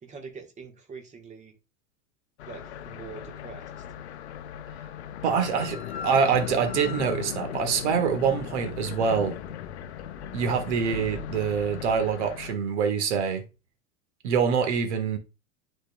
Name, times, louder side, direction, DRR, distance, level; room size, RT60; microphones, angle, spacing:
voice 1, 0.0-1.5 2.5-3.6, right 5 dB, 15° right, 1.4 m, -43 dB
sound 1, 2.4-12.5, left 9 dB, 50° left, 0.7 m, -37 dB
voice 2, 5.2-9.4 10.3-13.4 14.2-15.2, right 6 dB, 55° right, 1.6 m, -25 dB
10.0 x 4.4 x 2.3 m
figure-of-eight pair, 90°, 42 cm